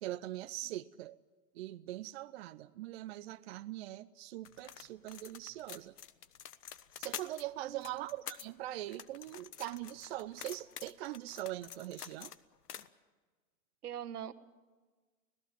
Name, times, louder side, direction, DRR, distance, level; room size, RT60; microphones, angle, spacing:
voice 1, 0.0-1.2 1.5-6.0 7.0-12.3, right 15 dB, 40° right, 12 dB, 0.6 m, -42 dB
sound 1, 4.4-7.4 7.8-8.5 8.9-12.4 12.7-12.9, left 9 dB, 75° left, 1.3 m, -47 dB
voice 2, 7.6-8.1 13.8-14.3, right 9 dB, 75° right, 11 dB, 1.5 m, -43 dB
26.0 x 17.5 x 7.6 m, 1.4 s
hypercardioid pair, 120°, 47 cm